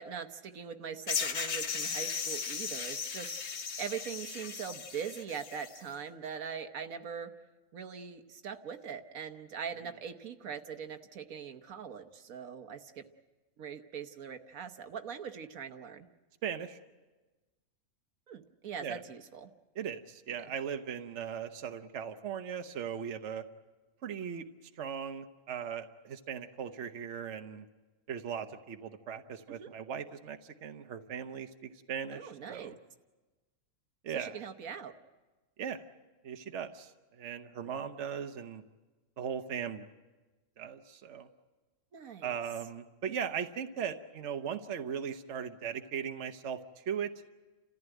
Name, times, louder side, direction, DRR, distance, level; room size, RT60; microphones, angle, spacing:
voice 1, 0.0-3.3 3.8-7.3 7.7-13.0 13.6-16.1 18.3-19.5 20.4-20.5 29.5-29.7 32.1-32.8 34.1-34.9 41.9-42.4, right 7 dB, 80° right, 7 dB, 1.5 m, -42 dB
sound 1, 1.1-5.8, left 6 dB, 55° left, 1.3 m, -36 dB
voice 2, 16.4-16.8 18.8-19.0 19.7-23.5 24.0-24.4 24.8-27.6 28.1-32.8 34.0-34.4 35.6-35.8 36.2-38.6 39.2-39.8 40.6-41.3 42.2-47.1, right 7 dB, 60° right, 7 dB, 1.2 m, -38 dB
30.0 x 14.5 x 9.1 m, 1.2 s
omnidirectional pair, 1.4 m